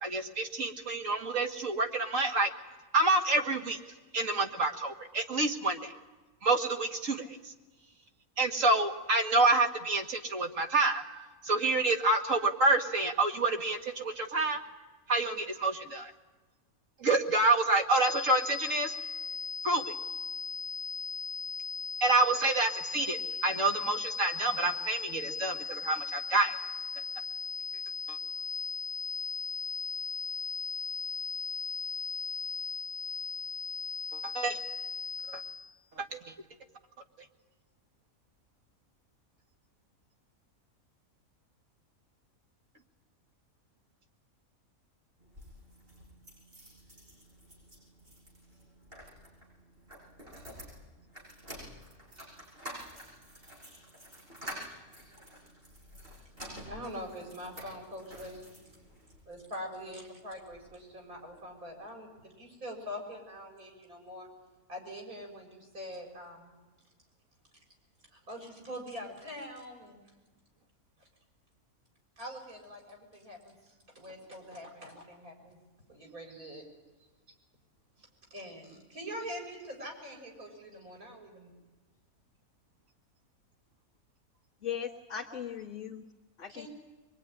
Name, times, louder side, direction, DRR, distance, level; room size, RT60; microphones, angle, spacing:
voice 1, 0.0-2.5 2.9-3.8 4.1-5.9 6.4-7.5 8.4-14.6 15.1-16.1 17.0-18.9 19.6-19.9 22.0-26.6 28.1-28.2 34.1-34.6 35.3-35.4 36.0-36.3, right 2 dB, 60° right, 4 dB, 2.2 m, -28 dB
sound 1, 18.0-35.7, left 4 dB, 70° left, 2.0 m, -37 dB
sound 2, 45.2-59.2 59.8-60.7 61.0-61.1 61.3-61.4, equal, 40° right, 8.5 m, -49 dB
voice 2, 56.7-58.4 59.3-64.3 64.7-66.5 68.1-70.0 72.2-75.6 75.9-76.6 78.0-81.5 86.5-86.7, equal, 80° right, 0 dB, 6.9 m, -44 dB
voice 3, 84.6-86.1 86.4-86.7, left 8 dB, 55° left, -2 dB, 1.7 m, -38 dB
23.5 x 23.0 x 9.9 m, 1.2 s
omnidirectional pair, 1.5 m